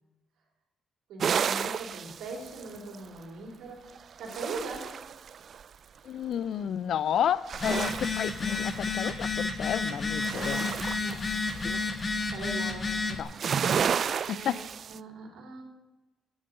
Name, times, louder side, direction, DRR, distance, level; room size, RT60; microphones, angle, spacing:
voice 1, 1.1-3.9 4.2-5.0 11.0-11.4 12.3-12.9 14.3-15.6, right 3 dB, 85° right, 2 dB, 3.3 m, -41 dB
sound 1, 1.2-3.2 4.0-5.7 7.3-9.2 9.7-12.1 13.2-15.0, right 7 dB, 55° right, 0.3 m, -32 dB
voice 2, 6.0-10.7 11.6-11.8 13.2-13.3 14.3-14.6, left 9 dB, 70° left, 17 dB, 0.4 m, -31 dB
Telephone, 7.5-13.2, left 3 dB, 35° left, 1.6 m, -31 dB
10.5 x 7.6 x 8.0 m, 1.1 s
cardioid pair, 90°, 0 cm